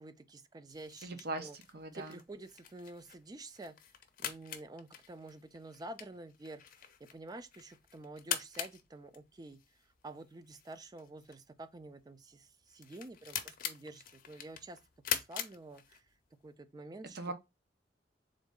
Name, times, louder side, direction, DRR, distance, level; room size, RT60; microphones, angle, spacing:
voice 1, 0.0-1.6 1.9-3.8 4.2-14.8 15.1-16.1 16.4-17.3, right 2 dB, 20° right, 0.4 m, -49 dB
sound 1, 0.7-16.3, left 9 dB, 50° left, 0.6 m, -44 dB
voice 2, 1.0-2.2 17.1-17.3, right 2 dB, 65° right, 0.8 m, -40 dB
3.8 x 3.1 x 3.6 m
head